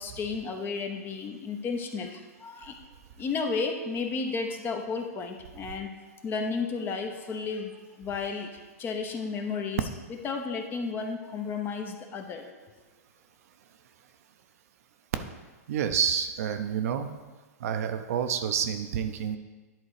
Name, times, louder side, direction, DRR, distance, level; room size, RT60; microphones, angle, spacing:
voice 1, 0.0-2.8 3.2-5.9 6.2-7.7 8.0-9.8 10.2-12.5, left 4 dB, 25° left, 5 dB, 0.8 m, -33 dB
voice 2, 15.7-17.1 17.6-19.4, right 8 dB, 65° right, 7 dB, 0.7 m, -28 dB
10.5 x 3.9 x 4.9 m, 1.3 s
hypercardioid pair, 130°, 9 cm